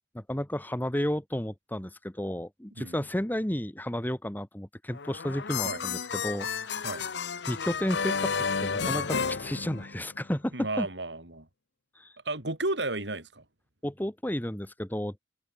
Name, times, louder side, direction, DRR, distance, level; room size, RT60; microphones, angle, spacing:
voice 1, 0.1-6.9 7.5-8.3 8.6-10.9 11.9-12.2 13.8-15.1, equal, 10° left, 1.4 m, -32 dB
sound 1, 4.9-10.3, left 5 dB, 80° left, 0.9 m, -32 dB
voice 2, 10.5-11.5 12.3-13.4, right 2 dB, 90° right, 5.2 m, -33 dB
head